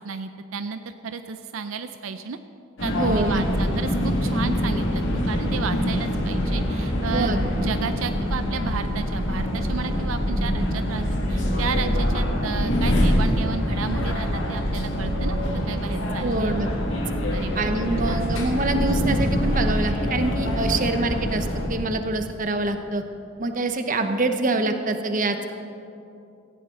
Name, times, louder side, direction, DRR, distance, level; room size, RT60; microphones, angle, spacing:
voice 1, 0.0-2.4 2.8-11.0 11.3-15.4 15.7-16.6 17.3-17.7 18.1-18.3, right 5 dB, 80° right, 9 dB, 0.5 m, -33 dB
sound 1, 2.8-21.7, equal, 60° left, 2.0 m, -24 dB
voice 2, 3.0-3.4 7.1-7.7 16.2-16.7 17.5-23.0 23.4-25.5, right 2 dB, 40° right, 7 dB, 1.0 m, -25 dB
17.5 x 15.0 x 3.8 m, 2.7 s
head